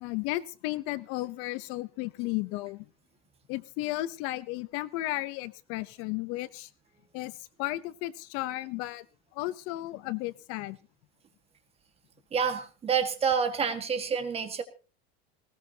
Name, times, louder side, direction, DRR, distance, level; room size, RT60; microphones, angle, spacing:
voice 1, 0.0-2.9 3.5-6.7 7.1-9.1 9.3-10.8, left 17 dB, 50° left, 16 dB, 0.7 m, -34 dB
voice 2, 12.3-14.6, right 6 dB, 20° right, 8 dB, 1.7 m, -28 dB
19.5 x 18.0 x 2.8 m, 0.34 s
cardioid pair, 165°, 30 cm